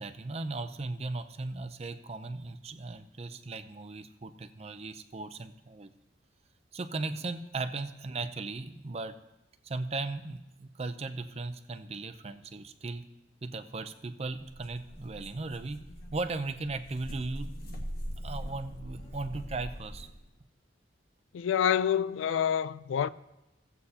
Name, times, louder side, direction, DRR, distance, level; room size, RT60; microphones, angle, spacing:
voice 1, 0.0-5.9 6.7-9.2 9.6-13.0 13.4-15.8 16.1-17.9 18.2-20.1, right 3 dB, 35° right, 0.5 m, -37 dB
sound 1, 14.4-20.3, equal, 50° left, 1.4 m, -42 dB
voice 2, 21.3-23.1, left 9 dB, 85° left, 0.3 m, -27 dB
16.0 x 8.1 x 2.8 m
head